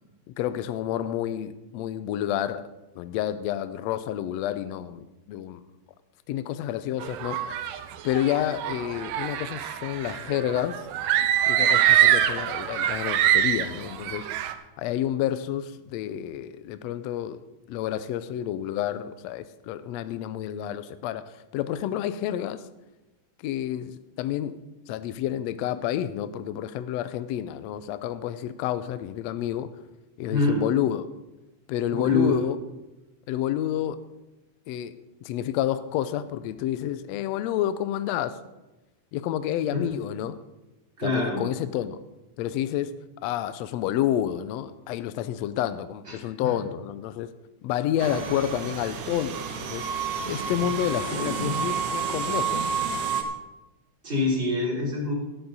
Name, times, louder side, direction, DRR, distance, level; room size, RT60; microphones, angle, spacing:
voice 1, 0.4-2.7 2.9-5.6 6.3-7.4 8.0-10.8 11.5-14.3 14.8-17.4 17.7-22.6 23.4-24.6 24.9-29.7 30.2-31.1 31.7-32.6 33.3-34.0 34.7-38.4 39.1-40.4 41.0-42.0 42.4-43.0 43.2-47.3 47.6-49.9 50.2-52.6, left 11 dB, 80° left, 13 dB, 1.5 m, -29 dB
sound 1, 7.0-14.5, right 11 dB, 90° right, 2.3 m, -24 dB
voice 2, 31.9-32.4 39.7-39.8 41.0-41.4 46.1-46.2 46.4-46.5 51.1-51.5 54.0-55.1, left 3 dB, 15° right, -4 dB, 3.6 m, -26 dB
sound 2, 48.0-53.2, right 6 dB, 70° right, 2.3 m, -30 dB
13.0 x 11.5 x 4.1 m, 1.0 s
omnidirectional pair, 3.6 m